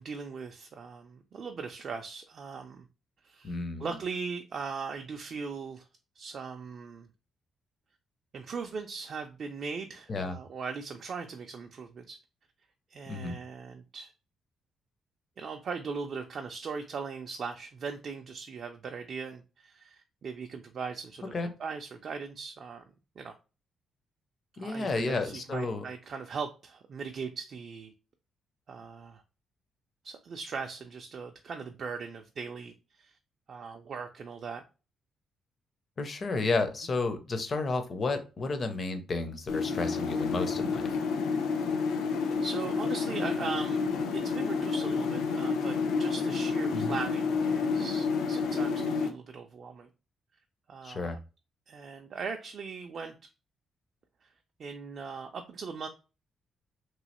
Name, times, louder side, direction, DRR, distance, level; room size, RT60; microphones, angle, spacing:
voice 1, 0.0-2.9 3.2-5.9 6.2-7.1 8.3-12.2 12.9-14.1 15.4-22.8 23.2-23.3 24.6-27.9 28.7-29.2 30.0-33.2 33.5-34.6 42.4-43.8 44.1-49.9 50.7-51.2 51.7-53.2 54.2-54.3 54.6-55.9, right 5 dB, 40° right, 4 dB, 0.3 m, -39 dB
voice 2, 3.4-3.9 10.1-10.4 13.1-13.4 21.3-21.5 24.6-25.8 36.0-40.9 46.7-47.0 50.8-51.2, left 3 dB, 30° left, 8 dB, 0.5 m, -32 dB
sound 1, 39.5-49.1, left 5 dB, 80° left, 0.5 m, -29 dB
3.0 x 2.7 x 2.9 m, 0.31 s
cardioid pair, 175°, 0 cm